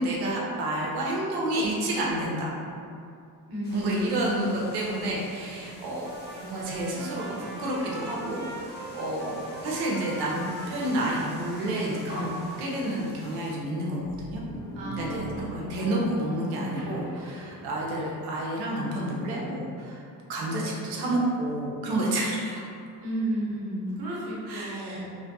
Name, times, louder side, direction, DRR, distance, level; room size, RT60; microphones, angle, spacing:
voice 1, 0.0-2.5 3.7-6.1 6.4-8.4 8.7-14.4 14.9-20.0 20.3-22.6 24.5-25.0, right 1 dB, 80° right, -4 dB, 0.7 m, -29 dB
voice 2, 3.5-4.2 14.7-16.7 23.0-25.1, right 1 dB, 65° right, -8 dB, 1.0 m, -33 dB
sound 1, 3.6-13.6, left 1 dB, 25° left, 0.5 m, -47 dB
Trumpet, 6.0-13.0, right 1 dB, 30° right, 0.6 m, -43 dB
sound 2, 11.6-11.7 12.1-13.4 14.0-16.3 16.8-18.6, equal, 10° right, 1.2 m, -41 dB
2.6 x 2.4 x 2.6 m, 2.4 s
cardioid pair, 110°, 38 cm